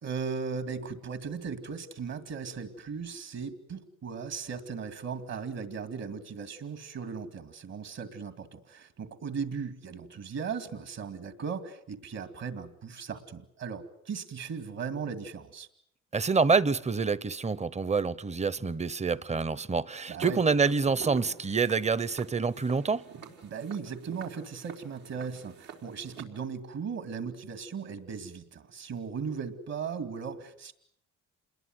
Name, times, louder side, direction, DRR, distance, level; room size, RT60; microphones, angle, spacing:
voice 1, 0.0-15.7 20.1-20.4 23.4-30.7, right 6 dB, 60° right, 2.5 m, -37 dB
voice 2, 16.1-23.0, right 4 dB, 20° right, 0.9 m, -27 dB
Walk footsteps, 20.2-26.2, right 7 dB, 85° right, 4.6 m, -46 dB
28.0 x 21.5 x 7.9 m
cardioid pair, 90°, 30 cm